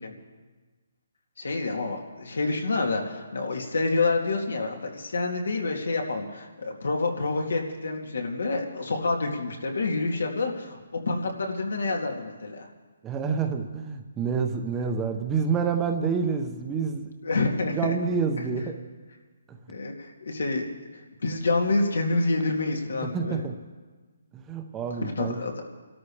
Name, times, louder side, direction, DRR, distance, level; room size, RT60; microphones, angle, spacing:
voice 1, 1.4-10.8 11.1-12.6 17.2-17.9 19.7-20.6 21.2-23.4 25.2-25.5, left 3 dB, 80° left, 1 dB, 2.5 m, -27 dB
voice 2, 13.0-17.1 17.7-18.8 19.5-19.6 23.1-23.6 24.3-25.4, right 5 dB, 10° right, 5 dB, 0.8 m, -28 dB
27.0 x 13.0 x 3.4 m, 1.3 s
hypercardioid pair, 165°, 0 cm